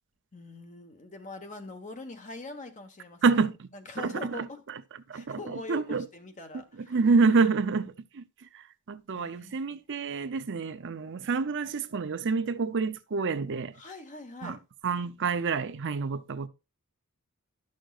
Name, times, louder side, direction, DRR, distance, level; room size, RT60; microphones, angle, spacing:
voice 1, 0.3-3.4 3.7-4.6 5.1-7.0 9.1-9.7 13.7-14.6, left 2 dB, 35° left, 1.3 m, -43 dB
voice 2, 3.2-3.7 4.0-4.5 5.1-6.1 6.5-6.6 6.9-8.2 8.5-13.7 14.4-14.6 14.8-16.5, right 4 dB, 55° right, 0.6 m, -28 dB
11.5 x 6.4 x 2.4 m
head